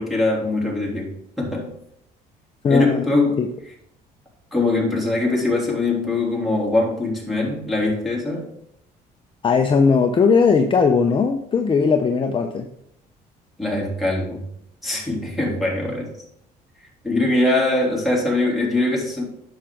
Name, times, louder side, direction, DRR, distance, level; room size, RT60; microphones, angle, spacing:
voice 1, 0.0-1.7 2.7-3.5 4.5-8.5 13.6-14.4 14.8-16.1 17.0-19.2, left 2 dB, ahead, -3 dB, 3.1 m, -22 dB
voice 2, 2.6-3.0 3.4-3.5 9.4-12.7, left 5 dB, 30° left, 5 dB, 0.6 m, -18 dB
9.3 x 6.2 x 3.8 m, 0.76 s
cardioid pair, 110°, 17 cm